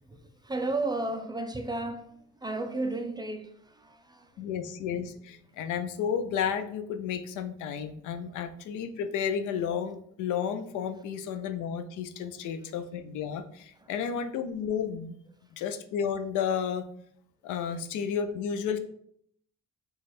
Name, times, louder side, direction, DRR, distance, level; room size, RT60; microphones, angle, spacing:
voice 1, 0.0-4.4 13.7-13.9, right 2 dB, 15° right, 0.3 m, -34 dB
voice 2, 4.4-15.1 15.5-16.8 17.4-18.8, left 7 dB, 90° left, 0.5 m, -32 dB
3.2 x 2.3 x 4.1 m
cardioid pair, 90°, 30 cm